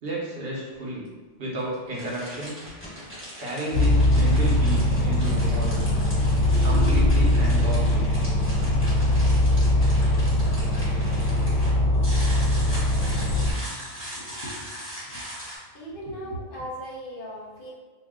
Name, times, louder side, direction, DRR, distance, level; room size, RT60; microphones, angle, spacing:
voice 1, 0.0-1.1 1.4-2.6 3.4-5.9 6.6-8.1, right 1 dB, 55° right, -4 dB, 0.9 m, -32 dB
sound 1, 0.7-0.8 1.6-15.6, equal, 10° right, 1.2 m, -39 dB
sound 2, 3.7-13.5, left 1 dB, 90° left, 0.3 m, -21 dB
voice 2, 13.2-14.7 15.7-17.7, equal, 55° left, -3 dB, 0.7 m, -39 dB
2.5 x 2.2 x 3.5 m, 1.3 s
omnidirectional pair, 1.3 m